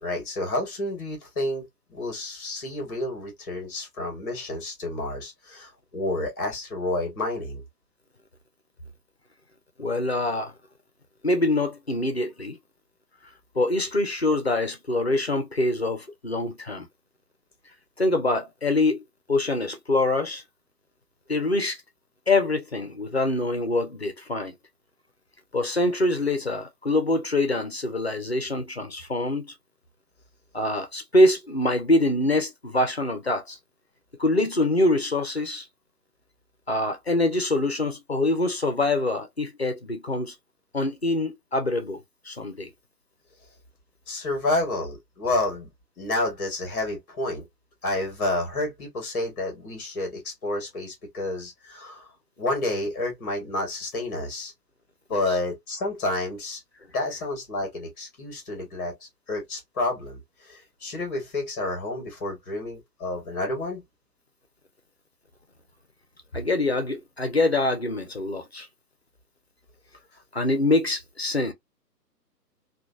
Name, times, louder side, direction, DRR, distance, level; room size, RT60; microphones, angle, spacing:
voice 1, 0.0-1.7 1.9-7.6 44.1-45.7 46.0-47.4 47.8-52.1 52.4-54.5 55.1-56.6 56.9-58.9 59.3-63.8, left 2 dB, 10° left, 0.8 m, -30 dB
voice 2, 9.8-10.5 11.2-12.6 13.6-16.9 18.0-20.4 21.3-21.8 22.3-24.5 25.5-29.5 30.5-33.6 34.2-35.7 36.7-40.4 40.7-42.7 55.1-55.2 66.3-68.7 70.3-71.5, left 2 dB, 45° left, 0.4 m, -25 dB
2.9 x 2.3 x 2.3 m
figure-of-eight pair, 140°, 50 cm